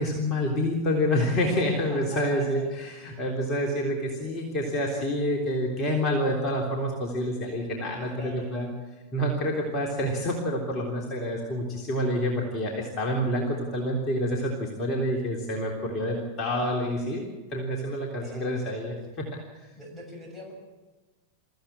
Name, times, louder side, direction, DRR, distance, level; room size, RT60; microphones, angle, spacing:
voice 1, 0.0-8.7 9.1-17.2 17.5-19.3 19.6-19.7, equal, 30° left, 0 dB, 3.5 m, -28 dB
voice 2, 1.6-2.7 8.1-8.6 18.2-18.6 19.8-20.5, equal, 10° left, 0 dB, 7.3 m, -44 dB
23.0 x 15.0 x 8.8 m, 1.2 s
figure-of-eight pair, 90°, 0 cm